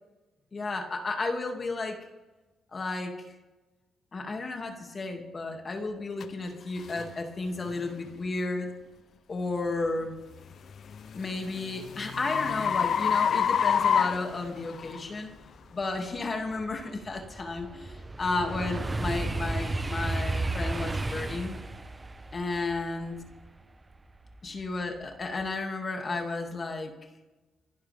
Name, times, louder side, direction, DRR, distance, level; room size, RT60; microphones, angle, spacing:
voice 1, 0.5-2.0 2.7-3.2 4.1-8.7 9.3-10.1 11.1-15.3 15.7-21.6 22.3-23.2 24.4-26.9, left 3 dB, 35° left, 3 dB, 2.4 m, -33 dB
sound 1, 6.2-6.3 6.9-7.1 7.7-7.9 10.5-15.0, left 7 dB, 60° left, 0.7 m, -27 dB
sound 2, 15.0-15.1 15.6-24.6 25.0-25.4, right 2 dB, 20° right, 0.9 m, -34 dB
28.0 x 11.5 x 3.6 m, 1.1 s
cardioid pair, 90°, 0 cm